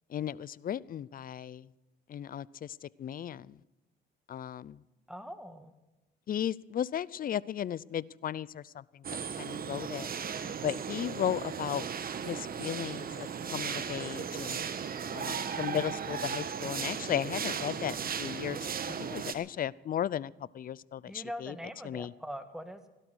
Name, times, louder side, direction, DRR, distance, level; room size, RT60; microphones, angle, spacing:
voice 1, 0.1-1.6 2.1-3.5 4.3-4.8 6.3-8.8 9.4-10.1 10.6-11.8 12.3-14.6 15.1-18.6 19.0-21.5 21.8-22.1, left 10 dB, 45° left, 22 dB, 0.5 m, -35 dB
voice 2, 5.1-5.7 21.0-22.9, equal, ahead, 9 dB, 1.6 m, -42 dB
sound 1, 9.0-19.3, right 7 dB, 50° right, 1.3 m, -36 dB
17.0 x 12.0 x 6.2 m, 1.0 s
cardioid pair, 90°, 20 cm